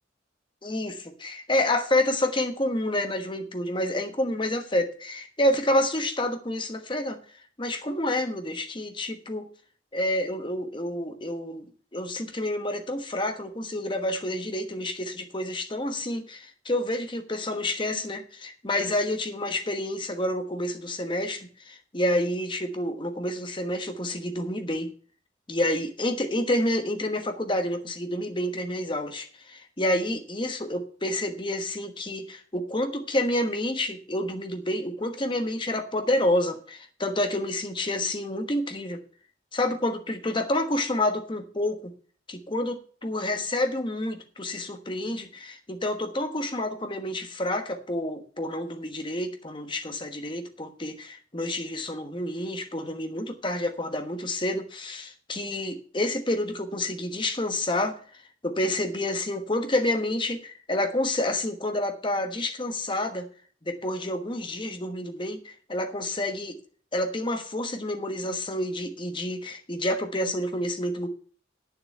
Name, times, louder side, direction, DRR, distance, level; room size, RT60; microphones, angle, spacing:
voice 1, 0.6-7.2 7.6-9.5 9.9-11.7 11.9-24.9 25.5-39.0 39.5-41.9 42.3-63.3 63.6-66.5 66.9-71.1, left 1 dB, 25° left, 6 dB, 1.2 m, -29 dB
9.1 x 6.9 x 7.7 m, 0.43 s
head